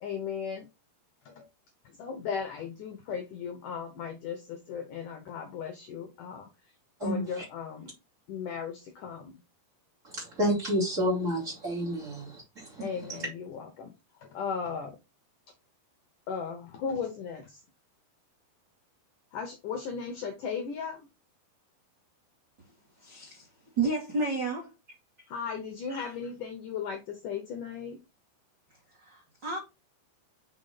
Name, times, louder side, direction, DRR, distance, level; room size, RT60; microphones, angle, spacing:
voice 1, 0.0-0.7 1.3-1.5 2.0-6.5 7.0-7.9 8.3-9.3 12.8-13.9 14.2-15.0 16.3-17.6 19.3-21.1 25.3-28.0, left 6 dB, 75° left, 2.0 m, -36 dB
voice 2, 10.1-12.8, equal, 20° right, 2.3 m, -29 dB
voice 3, 23.0-23.5 23.8-24.7 25.9-26.1 29.0-29.6, right 3 dB, 65° right, 1.1 m, -31 dB
5.8 x 5.2 x 4.2 m
omnidirectional pair, 4.9 m